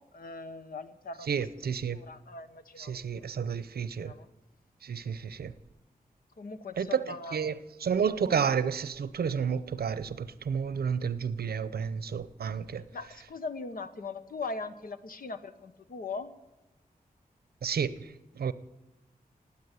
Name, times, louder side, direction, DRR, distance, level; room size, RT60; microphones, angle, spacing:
voice 1, 0.0-1.5 1.9-3.0 4.0-4.3 6.4-7.5 12.8-16.3, left 4 dB, 70° left, 1.1 m, -40 dB
voice 2, 1.3-2.0 2.8-4.1 4.8-5.5 6.8-7.0 7.3-12.8 17.6-18.5, right 7 dB, 90° right, 0.8 m, -31 dB
18.5 x 8.6 x 8.3 m
wide cardioid pair, 120°, 16 cm